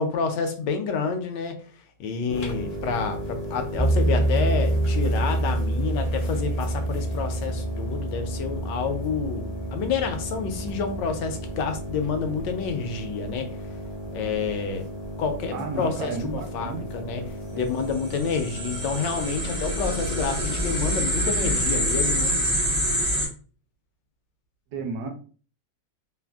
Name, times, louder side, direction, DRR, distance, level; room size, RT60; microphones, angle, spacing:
voice 1, 0.0-1.5 2.0-13.5 14.1-14.8 15.2-17.2 17.5-22.4, left 5 dB, 85° left, 6 dB, 1.2 m, -29 dB
sound 1, 2.3-20.8, equal, 55° left, 0.7 m, -36 dB
sound 2, 3.8-11.9, right 1 dB, 20° left, 0.3 m, -27 dB
voice 2, 15.5-16.8 17.5-17.6 24.7-25.1, right 4 dB, 70° right, 3 dB, 1.0 m, -32 dB
sound 3, 17.9-23.3, equal, 40° right, 0.5 m, -26 dB
3.1 x 2.4 x 2.3 m, 0.39 s
omnidirectional pair, 1.9 m